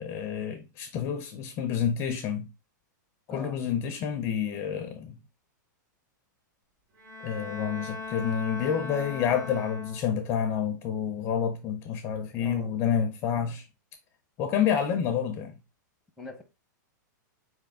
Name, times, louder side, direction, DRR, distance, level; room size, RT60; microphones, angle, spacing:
voice 1, 0.0-2.5 3.3-5.2 7.2-13.6 14.4-15.5, left 8 dB, 25° left, 0.5 m, -29 dB
Bowed string instrument, 7.0-10.4, left 3 dB, 75° right, 2.5 m, -39 dB
voice 2, 12.4-12.7 16.2-16.4, left 2 dB, ahead, 0.8 m, -42 dB
4.5 x 3.4 x 3.5 m
supercardioid pair, 160°, 10 cm